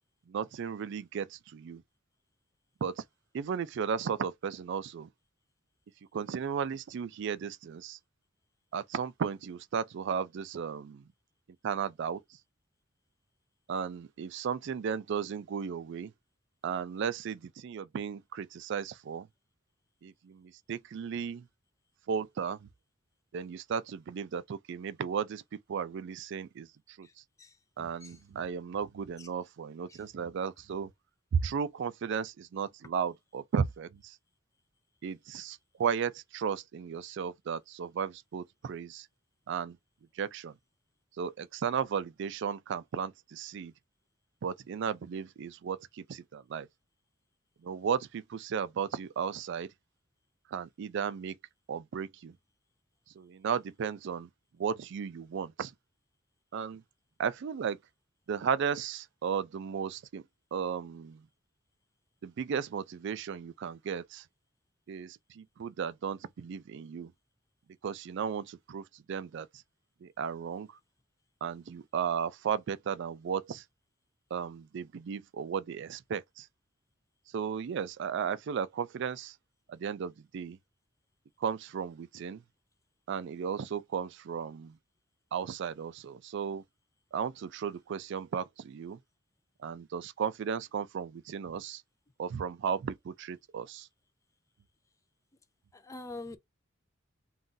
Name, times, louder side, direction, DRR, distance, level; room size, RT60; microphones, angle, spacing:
voice 1, 0.3-1.8 2.8-3.0 3.3-5.1 6.1-8.0 8.7-11.1 11.6-12.2 13.7-16.1 16.6-19.3 20.0-21.5 22.1-22.7 23.3-27.1 27.8-30.9 31.3-34.2 35.0-39.1 39.5-39.8 40.2-40.5 41.2-43.7 44.4-46.7 47.6-49.7 50.5-51.4 51.7-52.4 53.2-54.3 54.6-55.7 56.5-56.8 57.2-57.8 58.3-60.2 60.5-61.3 62.2-64.2 64.9-67.1 67.8-69.5 70.0-70.8 71.4-73.6 74.3-76.5 77.3-79.4 79.7-80.6 81.4-82.4 83.1-84.8 85.3-86.6 87.1-89.0 89.6-91.8 92.2-93.9, right 7 dB, 60° right, 0.3 m, -35 dB
voice 2, 95.7-96.4, left 2 dB, 15° left, 0.4 m, -44 dB
2.6 x 2.3 x 3.7 m
head